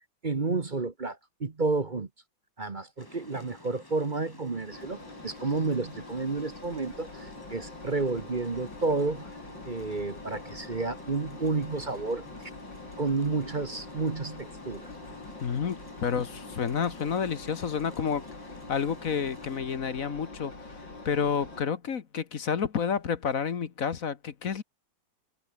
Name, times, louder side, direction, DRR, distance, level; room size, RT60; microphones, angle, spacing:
voice 1, 0.2-2.1 2.6-9.3 9.6-12.3 13.0-14.9, right 3 dB, 30° right, 1.1 m, -31 dB
sound 1, 3.0-19.6, left 2 dB, 10° left, 1.6 m, -50 dB
Engine, 4.7-21.6, left 2 dB, 65° left, 7.2 m, -45 dB
voice 2, 15.4-18.2 18.7-24.6, left 7 dB, 45° left, 1.6 m, -30 dB
omnidirectional pair, 2.1 m